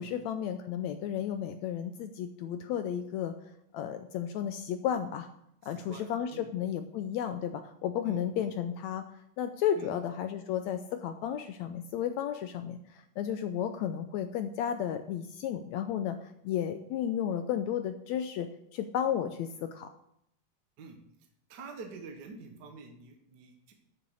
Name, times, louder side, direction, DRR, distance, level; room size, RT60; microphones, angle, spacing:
voice 1, 0.0-3.3 3.7-5.3 5.6-9.0 9.4-16.2 16.4-19.9, left 9 dB, 80° left, 8 dB, 1.6 m, -33 dB
voice 2, 5.6-6.5 8.0-8.5 9.7-9.9 20.8-21.0 21.5-23.7, right 4 dB, 55° right, 3 dB, 1.2 m, -47 dB
10.0 x 6.8 x 6.3 m, 0.76 s
omnidirectional pair, 3.7 m